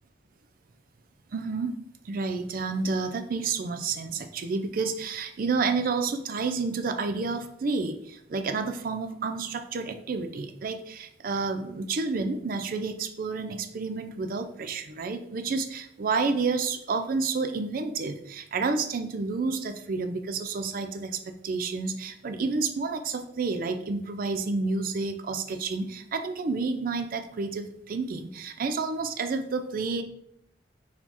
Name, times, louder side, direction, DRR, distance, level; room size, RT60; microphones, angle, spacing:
voice 1, 1.3-1.8 2.0-30.0, right 4 dB, 50° right, 8 dB, 0.4 m, -30 dB
4.1 x 2.9 x 3.9 m, 0.75 s
head